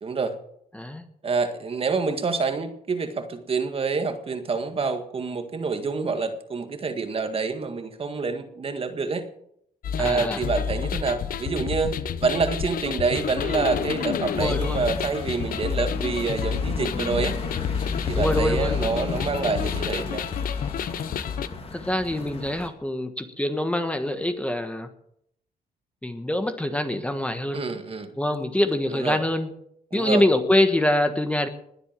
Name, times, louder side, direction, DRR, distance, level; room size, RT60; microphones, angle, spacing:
voice 1, 0.0-0.4 1.2-9.2 10.0-11.9 12.2-17.4 18.1-20.3 27.5-28.2 28.9-29.2 29.9-30.2, right 4 dB, 40° right, 7 dB, 1.9 m, -27 dB
sound 1, 9.8-21.5, left 7 dB, 65° left, 1.0 m, -29 dB
voice 2, 10.0-10.4 14.4-14.8 18.1-18.7 21.7-24.9 26.0-27.6 28.2-29.5 29.9-31.5, left 1 dB, 10° left, 7 dB, 1.4 m, -24 dB
sound 2, 13.1-22.7, left 4 dB, 40° left, 2.7 m, -36 dB
20.5 x 8.1 x 7.5 m, 0.72 s
cardioid pair, 115°, 16 cm